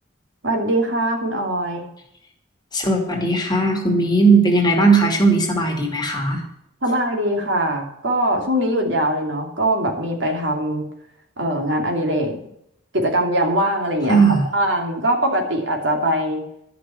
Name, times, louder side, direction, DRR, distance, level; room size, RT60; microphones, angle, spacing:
voice 1, 0.4-1.8 6.8-10.9 11.4-12.4 12.9-14.2 14.5-16.4, right 1 dB, 75° right, 2 dB, 2.7 m, -22 dB
voice 2, 2.7-6.4 14.1-14.4, right 3 dB, 25° left, 0 dB, 2.4 m, -17 dB
12.0 x 6.0 x 8.6 m, 0.75 s
head